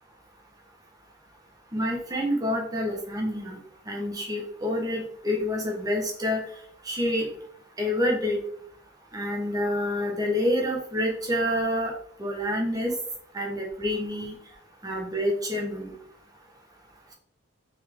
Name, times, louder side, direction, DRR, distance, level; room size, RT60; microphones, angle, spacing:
voice 1, 1.7-3.6 3.9-6.4 6.8-7.3 7.8-8.4 9.1-11.9 12.2-12.9 13.3-14.3 14.8-15.9, left 1 dB, 15° right, 0 dB, 1.3 m, -27 dB
5.9 x 4.3 x 3.8 m, 0.63 s
head